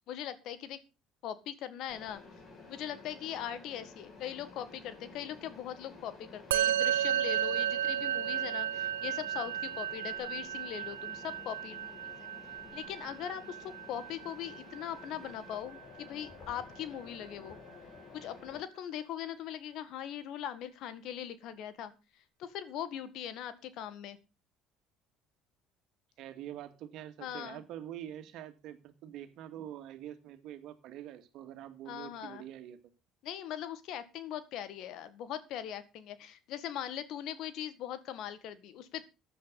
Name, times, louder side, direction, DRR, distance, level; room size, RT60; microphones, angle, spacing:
voice 1, 0.1-0.8 1.2-2.2 2.7-12.3 12.7-17.6 18.1-21.9 22.4-24.2 27.2-27.6 31.9-32.4 33.2-39.0, left 10 dB, 65° left, 13 dB, 1.8 m, -40 dB
Mechanisms, 1.9-18.6, left 3 dB, 50° left, 6.1 m, -52 dB
Musical instrument, 6.5-16.0, right 11 dB, 90° right, 0.6 m, -34 dB
voice 2, 26.2-32.8, right 11 dB, 65° right, 8 dB, 2.2 m, -45 dB
15.0 x 10.0 x 4.0 m, 0.30 s
hypercardioid pair, 70°, 0 cm